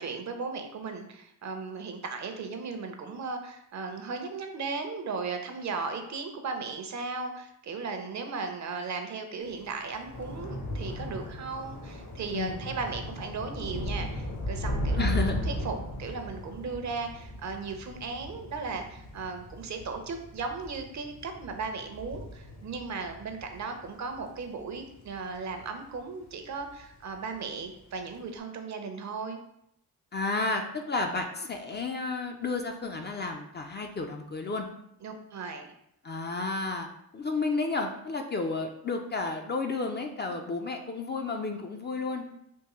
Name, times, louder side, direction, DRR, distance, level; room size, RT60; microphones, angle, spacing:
voice 1, 0.0-29.4 35.0-35.7, right 4 dB, 50° right, 5 dB, 0.6 m, -36 dB
Thunder / Rain, 9.5-26.1 26.4-26.9 27.1-27.3, equal, 50° left, 0.9 m, -37 dB
voice 2, 15.0-15.4 30.1-34.7 36.0-36.9 37.1-42.2, left 3 dB, 30° left, 4 dB, 0.4 m, -32 dB
3.6 x 2.6 x 3.0 m, 0.76 s
cardioid pair, 75°, 36 cm